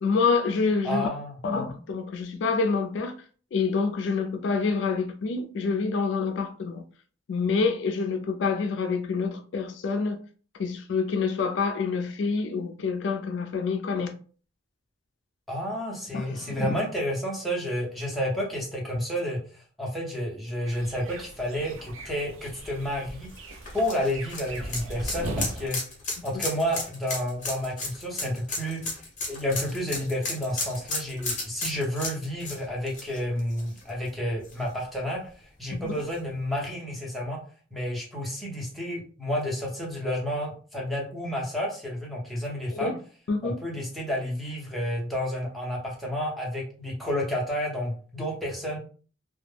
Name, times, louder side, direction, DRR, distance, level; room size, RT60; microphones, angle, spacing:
voice 1, 0.0-1.1 1.4-3.1 3.5-6.8 7.3-10.2 10.6-14.1 16.1-16.8 35.7-35.9 42.7-43.0 43.3-43.6, left 4 dB, 65° left, 0.3 m, -27 dB
voice 2, 0.8-1.4 15.5-23.3 23.7-25.8 26.2-28.9 29.3-37.4 37.7-43.0 43.4-48.8, equal, ahead, 0.6 m, -30 dB
sound 1, 20.6-25.7, right 1 dB, 85° right, 0.5 m, -38 dB
sound 2, 23.3-34.1 34.4-34.5 36.0-36.1, left 3 dB, 40° left, 0.7 m, -34 dB
2.2 x 2.0 x 3.2 m
head